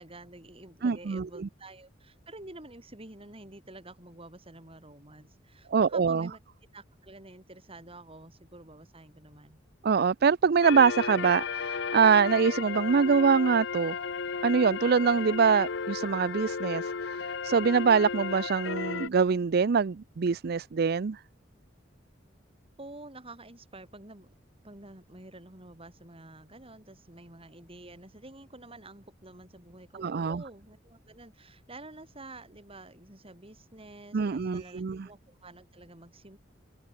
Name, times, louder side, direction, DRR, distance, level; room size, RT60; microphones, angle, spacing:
voice 1, 0.0-6.4 6.7-9.6 22.8-24.3 24.6-36.4, right 2 dB, 30° right, 6.5 m, -49 dB
voice 2, 0.8-1.3 5.7-6.3 9.8-14.0 14.4-21.2 30.0-30.4 34.1-35.1, right 6 dB, 55° right, 0.5 m, -24 dB
sound 1, 10.6-19.1, left 5 dB, 65° left, 0.7 m, -34 dB
head